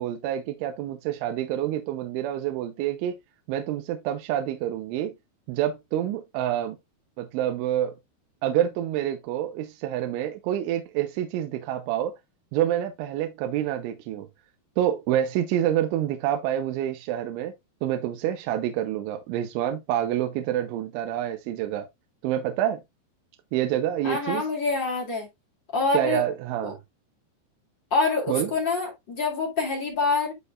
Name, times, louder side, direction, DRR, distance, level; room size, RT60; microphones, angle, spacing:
voice 1, 0.0-3.2 3.5-5.1 5.5-6.8 7.2-8.0 8.4-12.1 12.5-14.3 14.8-17.5 17.8-21.9 22.2-22.8 23.5-24.5 25.9-26.8 28.3-28.5, right 11 dB, 85° right, 3.2 m, -27 dB
voice 2, 24.0-25.3 25.7-26.2 26.6-26.7 27.9-30.3, left 3 dB, 40° left, 1.8 m, -26 dB
12.0 x 4.3 x 2.4 m
omnidirectional pair, 5.6 m